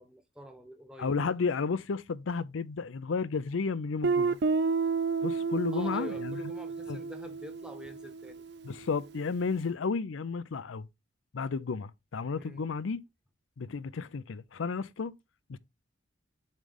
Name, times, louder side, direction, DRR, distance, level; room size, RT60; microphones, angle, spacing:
voice 1, 0.0-1.1 5.7-8.4 12.4-12.6, equal, 5° right, 1.1 m, -47 dB
voice 2, 1.0-4.4 5.2-6.4 6.9-7.0 8.6-10.9 11.3-13.0 13.6-15.1 15.5-15.6, left 5 dB, 85° left, 0.5 m, -32 dB
Guitar, 4.0-8.7, right 4 dB, 55° right, 0.5 m, -31 dB
7.3 x 3.2 x 5.3 m
head